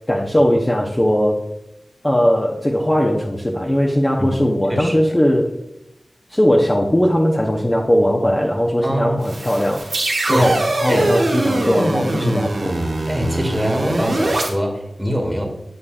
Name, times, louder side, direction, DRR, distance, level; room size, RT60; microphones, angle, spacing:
voice 1, 0.1-1.4 2.0-5.5 6.3-9.8 10.3-12.8, equal, 20° left, -1 dB, 0.7 m, -18 dB
voice 2, 8.8-9.2 10.3-10.5 10.8-11.1 12.2-12.4 13.1-15.4, equal, 10° right, 2 dB, 1.4 m, -23 dB
sound 1, 9.2-14.5, right 2 dB, 85° right, 1.0 m, -22 dB
7.6 x 6.4 x 2.4 m, 0.88 s
wide cardioid pair, 60°, 0 cm